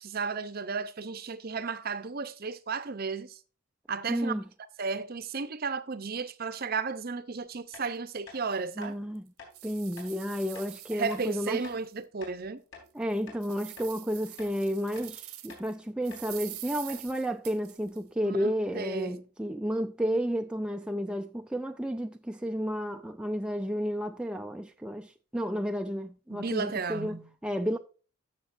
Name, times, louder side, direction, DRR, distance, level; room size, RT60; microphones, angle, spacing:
voice 1, 0.0-3.4 3.9-4.4 4.8-9.0 10.9-12.6 18.2-19.2 26.3-27.3, right 4 dB, 40° right, 0.6 m, -34 dB
voice 2, 4.1-4.4 8.8-9.3 9.6-11.6 12.9-27.2 27.4-27.8, equal, 5° right, 0.3 m, -32 dB
sound 1, 7.7-7.9 8.3-8.4 8.8-8.9 9.4-9.5 10.0-10.1 10.5-10.7 11.1-11.3 11.6-11.8 12.2-12.9 13.3-13.4 13.8-13.9 14.4-14.6 14.9-15.1 15.5-15.7 16.1-16.3 16.5-16.6 16.9-17.1, left 4 dB, 55° left, 4.0 m, -49 dB
sound 2, 7.9-8.0 8.5-8.6 9.1-12.0 12.4-12.5 13.0-15.7 16.0-18.0, right 15 dB, 85° right, 1.1 m, -46 dB
14.5 x 6.7 x 2.5 m
head